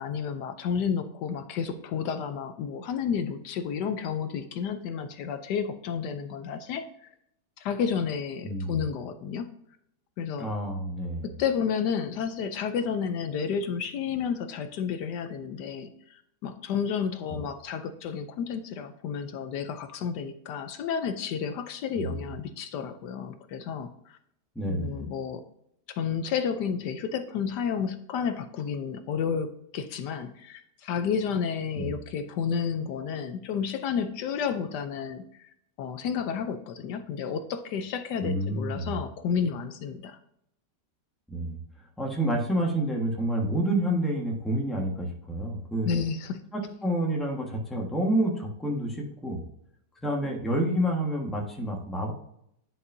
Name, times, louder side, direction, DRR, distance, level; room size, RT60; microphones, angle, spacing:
voice 1, 0.0-6.9 7.6-9.5 10.2-10.5 11.2-24.2 24.7-25.4 25.9-35.5 35.8-40.2 45.8-46.4, left 7 dB, 75° left, 9 dB, 1.2 m, -31 dB
voice 2, 8.4-8.8 10.4-11.3 21.9-22.1 24.5-25.0 31.8-31.9 38.2-38.9 41.3-41.6 42.0-46.0 46.5-49.4 50.0-52.1, right 1 dB, ahead, 0 dB, 1.1 m, -28 dB
10.0 x 5.4 x 2.6 m, 0.73 s
omnidirectional pair, 1.9 m